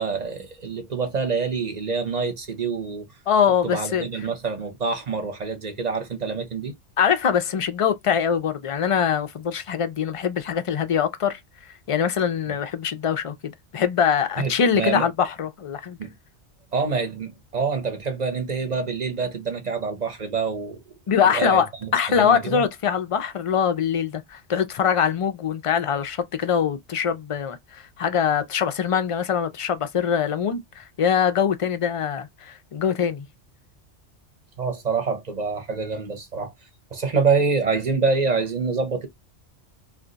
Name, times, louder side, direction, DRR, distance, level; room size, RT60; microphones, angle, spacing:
voice 1, 0.0-3.1 3.6-6.7 12.5-12.6 14.4-15.1 16.0-16.1 16.7-20.8 21.2-22.6 34.6-36.5 36.9-39.1, right 4 dB, 40° right, 0.8 m, -26 dB
voice 2, 3.3-4.1 7.0-11.4 11.9-16.0 21.1-33.2, left 7 dB, 55° left, 0.3 m, -23 dB
2.5 x 2.3 x 3.8 m
omnidirectional pair, 1.2 m